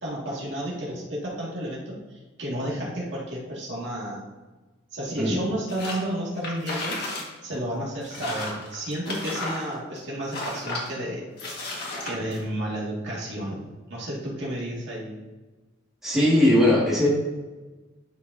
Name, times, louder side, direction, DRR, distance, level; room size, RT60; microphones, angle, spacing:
voice 1, 0.0-4.3 4.9-7.0 7.4-11.3 12.0-13.6 13.9-15.1, right 1 dB, 70° right, -5 dB, 2.1 m, -31 dB
sound 1, 5.7-6.0 6.4-7.3 7.5-7.6 8.0-10.0 10.3-10.9 11.4-12.4, left 2 dB, 55° left, 1.7 m, -33 dB
voice 2, 16.0-17.1, left 1 dB, ahead, -7 dB, 2.0 m, -19 dB
11.0 x 5.0 x 2.7 m, 1.2 s
head